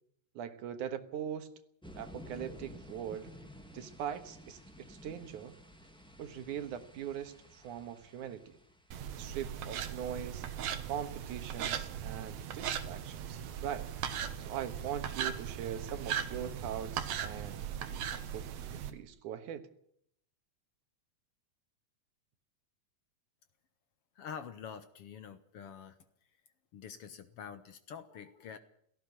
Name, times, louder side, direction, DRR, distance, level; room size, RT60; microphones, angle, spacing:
voice 1, 0.4-1.5 2.0-3.3 3.7-5.6 6.2-8.6 9.1-10.5 10.9-13.9 14.4-17.7 18.3-19.7, right 9 dB, 85° right, 10 dB, 2.8 m, -41 dB
sound 1, 1.8-9.3, equal, ahead, 1.3 m, -53 dB
sound 2, 8.9-18.9, right 8 dB, 70° right, 2.5 m, -38 dB
voice 2, 24.2-26.0 26.7-28.6, left 7 dB, 60° left, 11 dB, 1.9 m, -46 dB
17.0 x 15.5 x 9.8 m, 0.69 s
omnidirectional pair, 3.4 m